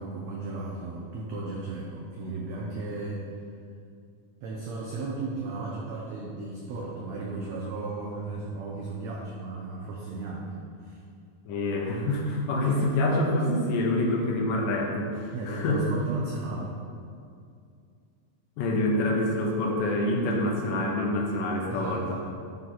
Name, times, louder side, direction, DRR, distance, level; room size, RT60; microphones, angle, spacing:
voice 1, 0.0-3.3 4.4-10.5 10.8-11.0 15.3-16.7 21.7-22.0, right 3 dB, 80° right, -3 dB, 1.6 m, -35 dB
voice 2, 11.5-15.8 18.6-22.2, left 1 dB, 75° left, 0 dB, 2.3 m, -26 dB
11.0 x 4.1 x 4.1 m, 2.3 s
omnidirectional pair, 4.1 m